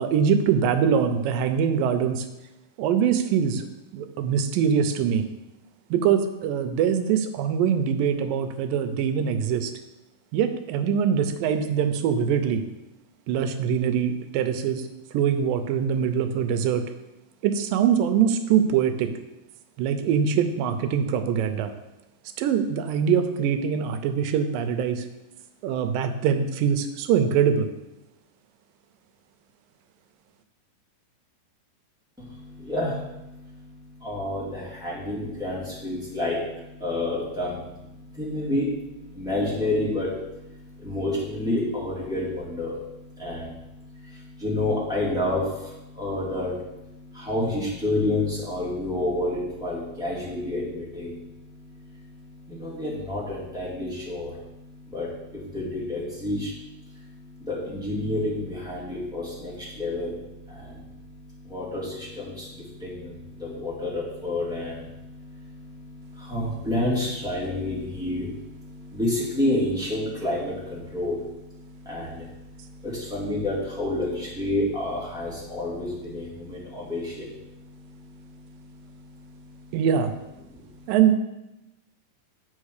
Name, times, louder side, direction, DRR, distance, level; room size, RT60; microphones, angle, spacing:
voice 1, 0.0-2.3 2.8-3.7 3.9-5.3 5.9-9.7 10.3-12.6 13.3-14.9 15.1-16.8 17.4-19.1 19.8-21.7 22.4-25.1 25.6-27.7 79.7-80.1 80.9-81.2, right 7 dB, 80° right, 8 dB, 2.4 m, -23 dB
voice 2, 32.2-79.8 80.5-80.9, left 1 dB, ahead, -7 dB, 1.7 m, -30 dB
7.4 x 5.3 x 6.5 m, 0.95 s
omnidirectional pair, 4.0 m